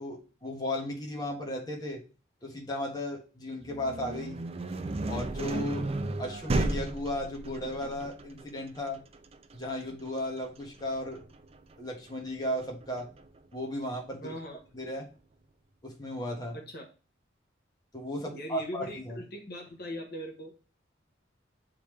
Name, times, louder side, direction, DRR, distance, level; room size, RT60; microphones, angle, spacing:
voice 1, 0.0-2.0 2.4-4.4 5.1-5.9 6.2-9.0 9.5-11.2 11.8-13.1 13.5-14.4 14.7-15.1 15.8-16.6 17.9-19.2, left 1 dB, 20° left, 0 dB, 1.5 m, -35 dB
sound 1, 3.6-13.4, right 2 dB, 35° right, 0.5 m, -35 dB
voice 2, 14.2-14.6 16.5-16.9 18.3-20.8, equal, 55° left, 2 dB, 1.2 m, -40 dB
8.3 x 3.6 x 3.2 m, 0.34 s
head